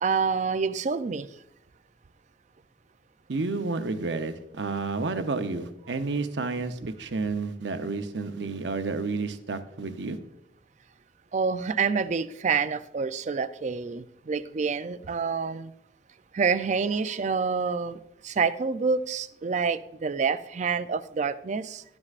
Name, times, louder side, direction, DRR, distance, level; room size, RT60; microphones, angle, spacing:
voice 1, 0.0-1.3 11.3-15.7 16.3-21.8, right 5 dB, 40° right, 13 dB, 0.4 m, -27 dB
voice 2, 3.3-10.2, right 3 dB, 75° right, 8 dB, 0.8 m, -30 dB
12.5 x 9.7 x 2.5 m, 0.82 s
head